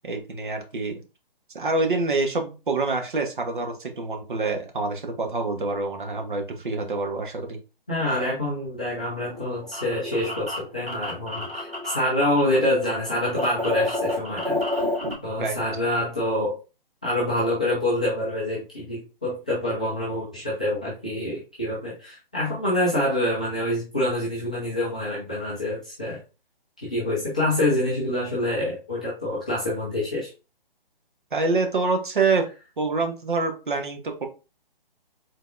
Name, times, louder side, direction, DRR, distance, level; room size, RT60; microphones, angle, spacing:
voice 1, 0.0-0.9 1.5-7.6 15.0-15.6 31.3-32.5 32.8-34.3, right 3 dB, 55° right, 3 dB, 1.1 m, -26 dB
voice 2, 7.9-14.8 15.2-16.6 17.0-26.2 26.8-30.3, left 1 dB, 10° left, -8 dB, 0.4 m, -26 dB
sound 1, 9.2-12.6 12.8-15.1, left 1 dB, 85° right, 2.5 m, -29 dB
5.3 x 3.9 x 2.6 m, 0.32 s
figure-of-eight pair, 135°, 29 cm